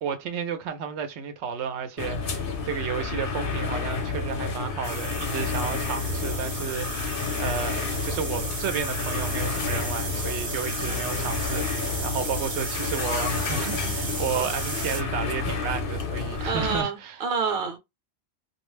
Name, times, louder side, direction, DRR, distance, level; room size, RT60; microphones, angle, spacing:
voice 1, 0.0-17.2, right 6 dB, 85° right, 0.9 m, -32 dB
sound 1, 2.0-16.8, left 4 dB, 60° left, 0.8 m, -30 dB
sound 2, 4.8-15.0, right 3 dB, 35° right, 0.5 m, -35 dB
voice 2, 10.8-11.2 14.4-14.5 16.4-17.8, right 5 dB, 55° right, 0.9 m, -29 dB
2.4 x 2.0 x 3.1 m
omnidirectional pair, 1.1 m